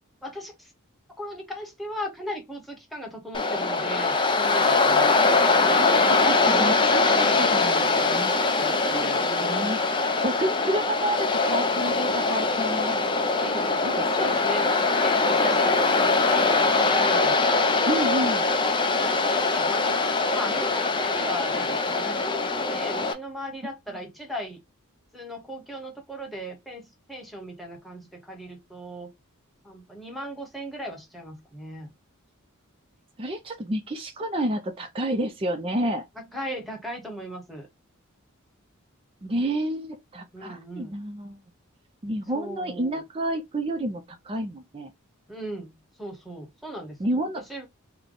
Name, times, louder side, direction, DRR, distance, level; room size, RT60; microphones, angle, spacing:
voice 1, 0.2-0.7 1.2-5.1 7.1-7.5 8.8-9.8 13.3-13.7 14.2-14.7 15.0-17.4 18.9-24.6 25.1-29.1 29.6-31.9 36.2-37.7 40.3-40.9 42.3-43.0 45.3-45.7 46.0-47.0 47.5-47.7, equal, ahead, 1.1 m, -37 dB
Waves surf, 3.3-23.1, left 3 dB, 20° left, 0.5 m, -22 dB
voice 2, 5.8-8.3 8.6-9.8 10.2-13.0 13.8-14.4 17.8-18.5 33.2-36.0 39.2-41.4 42.0-44.9 47.0-47.4, right 1 dB, 25° right, 0.5 m, -30 dB
3.4 x 2.2 x 3.7 m
head